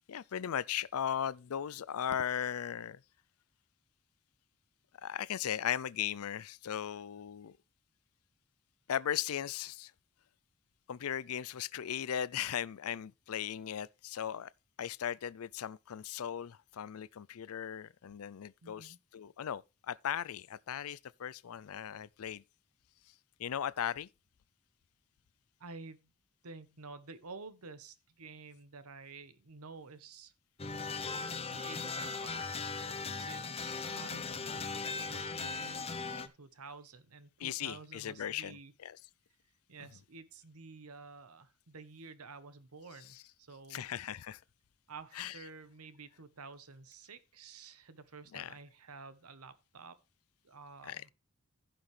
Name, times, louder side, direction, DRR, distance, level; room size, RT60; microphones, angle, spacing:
voice 1, 0.1-3.0 5.0-7.6 8.9-9.9 10.9-14.5 14.8-22.4 23.4-24.1 37.4-39.0 43.7-44.4 45.2-45.3 48.3-48.5 50.8-51.0, left 9 dB, 75° left, 0.4 m, -37 dB
voice 2, 18.6-19.0 25.6-26.1 26.4-30.3 31.5-38.7 39.7-43.8 44.9-50.0 50.4-51.1, right 4 dB, 85° right, 1.1 m, -51 dB
sound 1, 30.6-36.3, left 4 dB, 25° left, 0.7 m, -38 dB
15.5 x 5.9 x 3.3 m
head